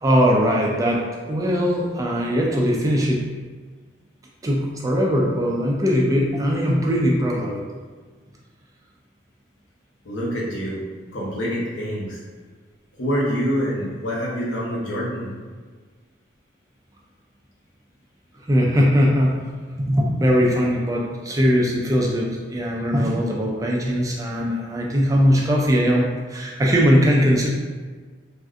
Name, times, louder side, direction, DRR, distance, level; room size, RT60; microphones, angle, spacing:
voice 1, 0.0-3.3 4.4-7.6 18.5-19.5 19.8-27.5, equal, 20° right, -2 dB, 0.3 m, -20 dB
voice 2, 10.0-10.8 11.1-12.2 13.0-15.3, equal, 85° left, -6 dB, 0.9 m, -26 dB
3.4 x 2.5 x 2.4 m, 1.4 s
head